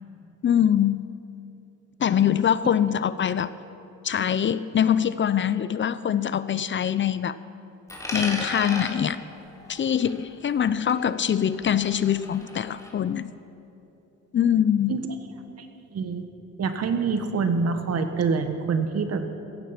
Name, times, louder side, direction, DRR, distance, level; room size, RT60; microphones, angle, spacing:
voice 1, 0.4-1.1 2.0-3.5 4.0-7.4 8.1-9.2 9.7-13.3 14.3-15.1, left 9 dB, 40° left, 15 dB, 0.5 m, -23 dB
Coin (dropping), 7.9-10.6 10.9-12.9, left 1 dB, 10° left, 3.7 m, -37 dB
voice 2, 15.9-16.2 16.6-19.3, right 5 dB, 55° right, 8 dB, 1.5 m, -25 dB
16.0 x 15.0 x 5.9 m, 2.9 s
cardioid pair, 90°, 30 cm